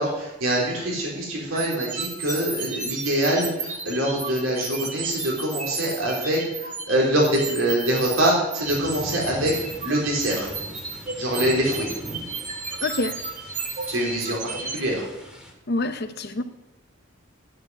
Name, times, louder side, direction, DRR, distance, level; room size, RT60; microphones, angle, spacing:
voice 1, 0.0-9.5 9.8-10.5 11.2-11.9 13.9-15.1, right 1 dB, 85° right, -2 dB, 3.9 m, -24 dB
sound 1, 1.5-14.8, right 4 dB, 40° right, 2.1 m, -33 dB
sound 2, 8.6-15.5, equal, 5° right, 2.3 m, -40 dB
voice 2, 12.8-13.2 15.7-16.4, left 2 dB, 50° left, 9 dB, 0.8 m, -26 dB
9.6 x 8.9 x 9.8 m, 0.93 s
head